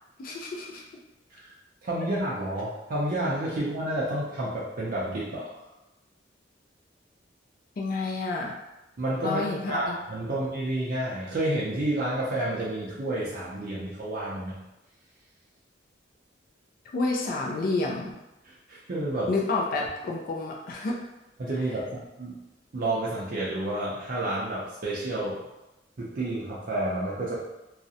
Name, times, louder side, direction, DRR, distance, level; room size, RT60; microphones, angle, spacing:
voice 1, 0.2-0.8 7.8-8.5 9.2-10.0 16.9-18.1 19.3-21.0, left 3 dB, 50° left, -2 dB, 0.3 m, -29 dB
voice 2, 1.8-5.5 9.0-14.5 18.4-19.3 21.4-22.4 22.7-25.4 26.0-27.4, right 1 dB, 50° right, -6 dB, 0.4 m, -30 dB
2.4 x 2.0 x 2.6 m, 0.97 s
head